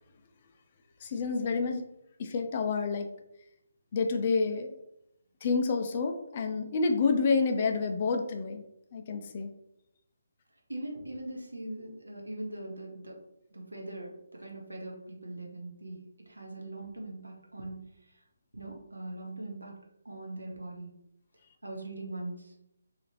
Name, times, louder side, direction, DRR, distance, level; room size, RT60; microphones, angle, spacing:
voice 1, 1.0-1.8 2.2-3.1 3.9-4.8 5.4-8.6 8.9-9.5, left 4 dB, 35° left, 5 dB, 0.3 m, -28 dB
voice 2, 10.7-13.2 13.5-17.9 18.5-19.7 20.0-20.9 21.6-22.6, right 1 dB, 75° right, 0 dB, 0.8 m, -41 dB
2.8 x 2.5 x 2.9 m, 0.80 s
figure-of-eight pair, 145°, 0 cm